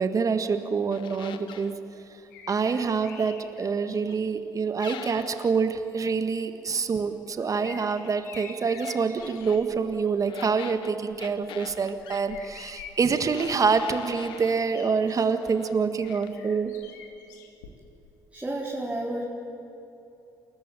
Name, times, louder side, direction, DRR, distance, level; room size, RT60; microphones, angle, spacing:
voice 1, 0.0-1.7 2.5-16.7, right 5 dB, 40° right, 9 dB, 1.7 m, -26 dB
sound 1, 0.9-1.8 4.8-5.6 8.7-9.6 10.3-12.3 13.3-14.7 15.1-15.8 16.1-16.3, left 10 dB, 60° left, 1.1 m, -43 dB
sound 2, 2.3-4.4 5.2-5.3 6.9-9.8 10.2-10.6 11.0-15.3 16.0-18.1 18.4-18.5, left 6 dB, 80° left, 2.0 m, -47 dB
voice 2, 18.3-19.2, right 1 dB, 15° right, -4 dB, 4.4 m, -31 dB
29.0 x 14.0 x 9.3 m, 2.8 s
hypercardioid pair, 50°, 9 cm